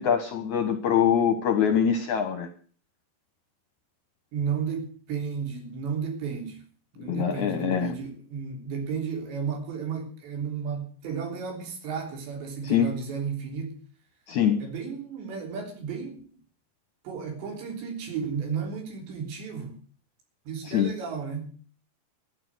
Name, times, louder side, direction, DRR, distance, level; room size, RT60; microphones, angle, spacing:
voice 1, 0.0-2.5 7.1-7.9 12.6-12.9 14.3-14.6 20.7-20.9, left 8 dB, 65° left, 8 dB, 1.9 m, -24 dB
voice 2, 4.3-6.6 7.0-13.8 14.6-16.2 17.1-19.8 20.5-21.6, right 6 dB, 80° right, 3 dB, 5.7 m, -33 dB
13.5 x 9.9 x 7.9 m, 0.44 s
omnidirectional pair, 5.0 m